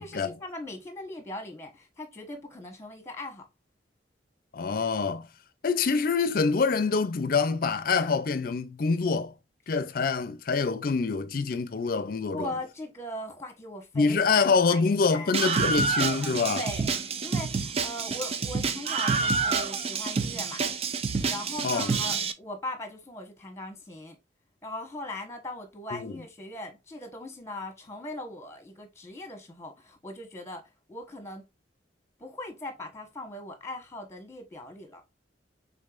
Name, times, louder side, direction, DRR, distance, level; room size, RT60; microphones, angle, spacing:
voice 1, 0.0-3.5 12.2-14.2 14.7-15.3 16.5-16.9 17.2-20.6 21.3-24.2 24.6-30.6 30.9-31.4 32.2-35.0, left 1 dB, 15° left, 1.2 m, -39 dB
voice 2, 4.5-5.3 5.6-9.3 9.7-12.5 13.9-16.6 21.6-21.9 25.9-26.2, left 4 dB, 50° left, 0.5 m, -26 dB
Screaming, 15.3-22.3, right 4 dB, 35° right, 0.4 m, -28 dB
5.5 x 3.7 x 2.5 m
head